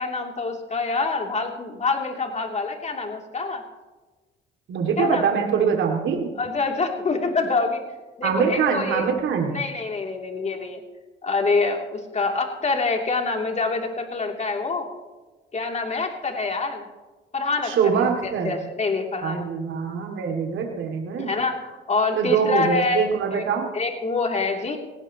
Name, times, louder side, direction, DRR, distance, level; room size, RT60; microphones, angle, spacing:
voice 1, 0.0-3.6 5.0-5.3 6.4-7.8 8.2-9.1 9.5-10.8 11.2-14.9 15.5-16.9 17.3-19.5 21.2-23.0 23.3-23.5 23.7-24.8, left 3 dB, 35° left, 2 dB, 2.9 m, -26 dB
voice 2, 4.7-6.3 8.2-9.5 17.6-18.5 19.2-21.3 22.2-23.7, right 6 dB, 75° right, 2 dB, 2.4 m, -23 dB
18.0 x 17.5 x 3.0 m, 1.3 s
cardioid pair, 90°, 20 cm